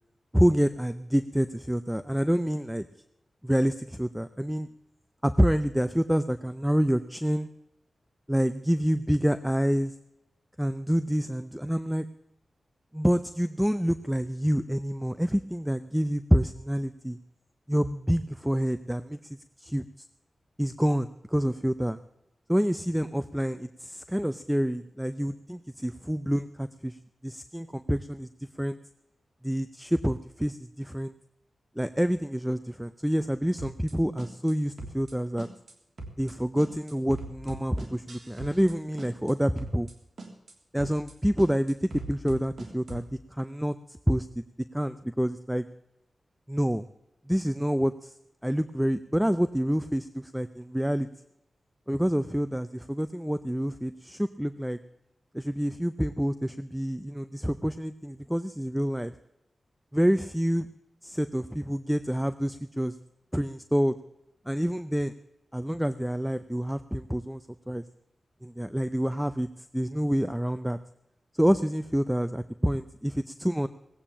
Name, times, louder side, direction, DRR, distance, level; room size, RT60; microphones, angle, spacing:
voice 1, 0.3-2.8 3.4-4.7 5.2-7.5 8.3-9.9 10.6-12.1 12.9-17.2 17.7-19.2 19.6-19.8 20.6-22.0 22.5-27.0 27.2-28.3 28.6-28.8 29.4-31.1 31.8-35.5 36.2-39.9 40.7-43.0 43.3-44.3 44.7-45.7 46.5-46.9 47.3-48.1 48.4-51.1 51.9-54.8 55.3-59.1 59.9-60.7 61.0-62.9 63.3-64.0 64.5-65.1 65.5-67.8 68.4-69.5 69.7-70.8 71.4-73.7, equal, 5° right, 11 dB, 0.6 m, -27 dB
sound 1, 33.6-33.9 34.2-34.5 34.8-35.1 35.4-35.7 36.0-36.3 36.6-38.7 39.0-39.3 39.6-39.9 40.2-40.5 40.8-41.1 41.4-43.1, right 2 dB, 65° right, 3.1 m, -41 dB
19.0 x 8.7 x 7.4 m, 0.84 s
wide cardioid pair, 80°, 0 cm